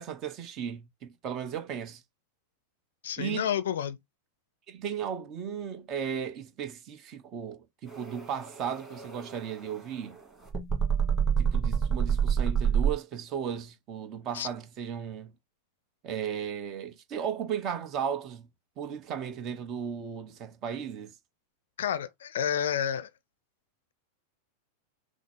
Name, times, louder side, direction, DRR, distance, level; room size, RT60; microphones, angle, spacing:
voice 1, 0.0-2.0 3.2-3.5 4.7-10.2 11.4-15.3 16.0-18.5 18.8-21.1, right 8 dB, 35° right, 0.9 m, -35 dB
voice 2, 3.0-4.0 14.3-14.5 21.8-23.1, left 9 dB, 60° left, 0.5 m, -30 dB
sound 1, 7.9-12.9, right 7 dB, 5° right, 1.8 m, -28 dB
6.1 x 2.0 x 3.5 m
figure-of-eight pair, 90°, 0 cm